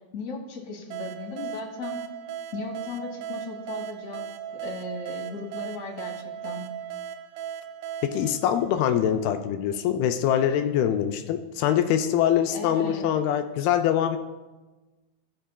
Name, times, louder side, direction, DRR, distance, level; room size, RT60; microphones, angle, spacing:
voice 1, 0.1-2.0 2.5-4.3 4.6-6.7 12.5-13.0, left 3 dB, 60° left, 0 dB, 2.0 m, -36 dB
sound 1, 0.9-9.4, right 9 dB, 90° right, 2.1 m, -37 dB
voice 2, 8.0-14.2, left 10 dB, 85° left, 7 dB, 2.3 m, -24 dB
16.5 x 5.5 x 2.2 m, 1.2 s
omnidirectional pair, 4.7 m